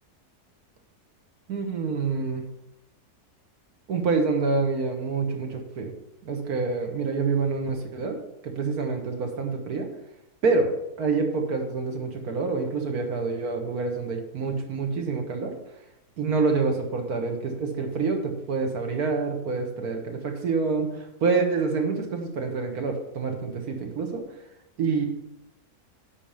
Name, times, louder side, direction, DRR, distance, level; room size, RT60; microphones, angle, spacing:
voice 1, 1.5-2.4 3.9-5.9 6.2-8.2 8.4-9.9 10.4-10.7 11.0-15.5 16.2-24.2 24.8-25.0, right 4 dB, 70° right, 3 dB, 1.8 m, -27 dB
8.5 x 5.1 x 6.9 m, 0.91 s
omnidirectional pair, 1.7 m